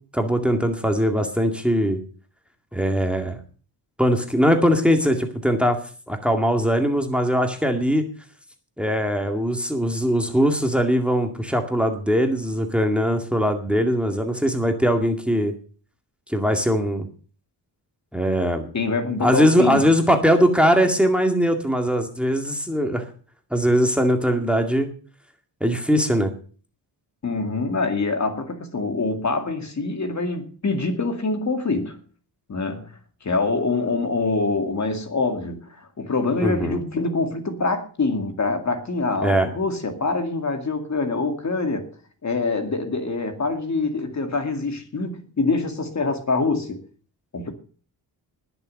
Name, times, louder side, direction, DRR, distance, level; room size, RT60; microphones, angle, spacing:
voice 1, 0.1-2.0 2.7-3.4 4.0-5.8 6.1-8.0 8.8-15.5 16.3-17.1 18.1-18.7 19.2-23.1 23.5-24.9 25.6-26.3 36.4-36.8 39.2-39.5, equal, 5° right, 2.1 m, -21 dB
voice 2, 18.7-19.8 27.2-32.0 32.5-32.8 33.2-41.9 42.2-46.8 47.3-47.5, left 3 dB, 40° left, 2.3 m, -25 dB
20.0 x 6.9 x 6.5 m
wide cardioid pair, 120°, 44 cm